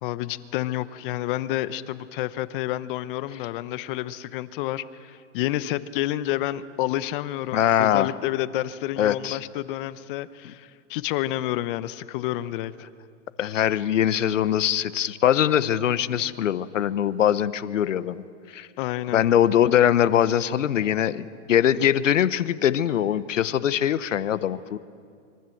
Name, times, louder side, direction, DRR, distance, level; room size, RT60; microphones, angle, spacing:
voice 1, 0.0-12.7 18.8-19.2, left 14 dB, 45° left, 15 dB, 0.9 m, -29 dB
voice 2, 7.5-8.1 9.0-9.4 13.4-18.7 19.1-24.8, left 10 dB, 85° left, 15 dB, 1.1 m, -22 dB
26.0 x 23.5 x 7.8 m, 2.3 s
hypercardioid pair, 130°, 37 cm